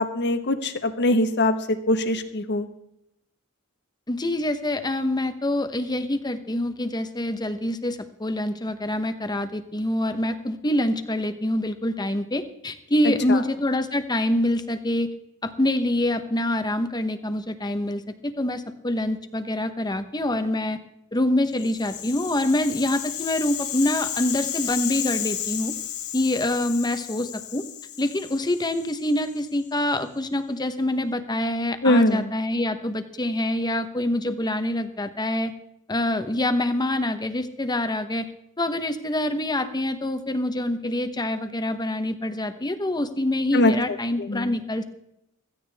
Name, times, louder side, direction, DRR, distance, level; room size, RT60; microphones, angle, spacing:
voice 1, 0.0-2.7 13.3-13.4 31.8-32.3 43.5-43.7 44.2-44.5, left 1 dB, 55° left, 9 dB, 1.3 m, -22 dB
voice 2, 4.1-15.1 15.4-20.8 21.1-25.7 26.1-27.6 28.0-35.5 35.9-38.3 38.6-44.8, left 1 dB, 20° left, 9 dB, 1.0 m, -25 dB
Rattle (instrument), 21.5-29.7, left 10 dB, 70° left, 1.8 m, -33 dB
16.5 x 15.0 x 3.5 m, 0.80 s
head